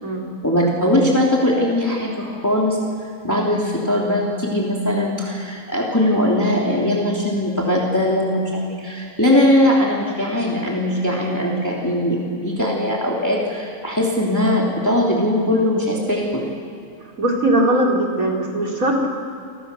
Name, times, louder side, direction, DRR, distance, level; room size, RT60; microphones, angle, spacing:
voice 1, 0.4-2.8 3.2-16.4, left 1 dB, 10° left, -3 dB, 3.3 m, -20 dB
voice 2, 17.2-19.1, right 1 dB, 65° right, -1 dB, 4.0 m, -19 dB
29.0 x 24.0 x 7.0 m, 2.6 s
omnidirectional pair, 1.6 m